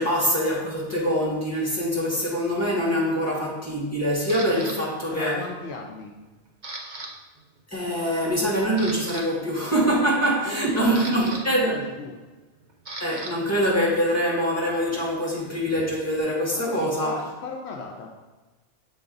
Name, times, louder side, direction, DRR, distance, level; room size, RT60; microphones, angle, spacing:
voice 1, 0.0-5.4 7.7-11.8 13.0-17.2, equal, 15° left, -5 dB, 1.7 m, -24 dB
Camera, 4.3-4.8 5.4-5.7 6.0-7.1 7.4-7.6 8.1-8.2 8.6-9.2 10.4-13.3 13.6-16.2, right 2 dB, 45° right, 0.8 m, -39 dB
voice 2, 4.5-6.1 10.4-12.2 16.5-18.1, left 4 dB, 70° left, 0 dB, 0.9 m, -37 dB
6.8 x 4.0 x 3.9 m, 1.2 s
omnidirectional pair, 1.2 m